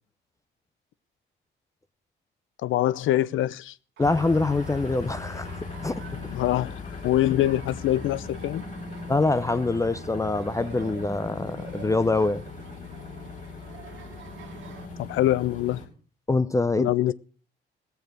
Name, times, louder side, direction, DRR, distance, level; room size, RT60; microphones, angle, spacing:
voice 1, 2.6-3.7 6.3-8.6 15.0-15.8 16.8-17.1, left 14 dB, 80° left, 0.6 m, -24 dB
sound 1, 4.0-15.9, left 3 dB, 40° left, 4.8 m, -39 dB
voice 2, 4.0-6.0 9.1-12.4 16.3-16.9, left 3 dB, 15° left, 0.6 m, -25 dB
Laughter, 4.0-14.9, right 9 dB, 75° right, 1.7 m, -49 dB
17.0 x 7.1 x 6.3 m
cardioid pair, 90°, 20 cm